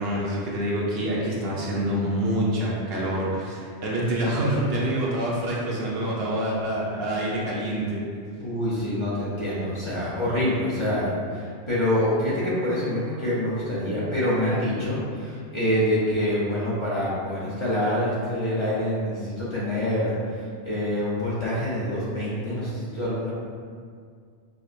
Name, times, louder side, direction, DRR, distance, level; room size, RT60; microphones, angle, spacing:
voice 1, 0.0-8.0, right 1 dB, 65° right, -4 dB, 0.8 m, -26 dB
voice 2, 8.4-23.3, left 1 dB, 35° left, -10 dB, 0.6 m, -26 dB
4.9 x 2.0 x 2.5 m, 2.1 s
omnidirectional pair, 1.1 m